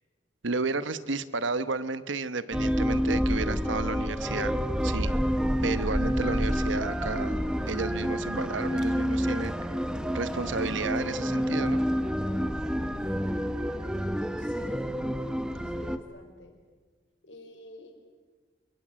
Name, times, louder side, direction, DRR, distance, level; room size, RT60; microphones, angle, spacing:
voice 1, 0.4-4.5 4.8-5.1 5.6-7.4 7.7-9.5 10.1-11.8, right 3 dB, 85° right, 14 dB, 1.1 m, -32 dB
sound 1, 2.5-16.0, equal, 5° right, 1.0 m, -28 dB
voice 2, 14.4-15.0 15.6-16.5 17.2-18.0, left 1 dB, 80° left, 4 dB, 5.4 m, -49 dB
29.0 x 22.5 x 7.6 m, 1.4 s
head